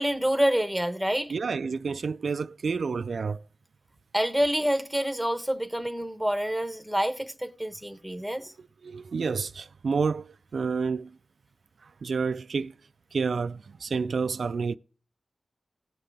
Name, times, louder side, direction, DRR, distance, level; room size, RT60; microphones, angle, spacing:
voice 1, 0.0-1.3 4.1-8.5, equal, ahead, 1.1 m, -27 dB
voice 2, 1.3-3.4 8.6-11.2 11.8-12.7 13.1-14.8, right 5 dB, 75° right, 0.3 m, -29 dB
17.0 x 5.8 x 3.4 m
wide cardioid pair, 115°, 0 cm